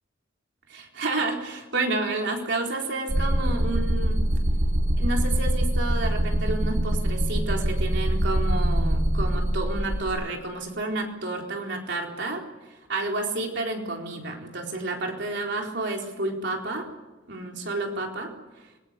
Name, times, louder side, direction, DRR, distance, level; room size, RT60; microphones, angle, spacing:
voice 1, 0.7-4.2 5.0-12.4 12.9-16.8 17.3-18.3, right 2 dB, 60° right, 1 dB, 4.2 m, -30 dB
sound 1, 3.1-10.0, right 1 dB, 85° right, 3.0 m, -24 dB
26.0 x 21.5 x 8.3 m, 1.1 s
head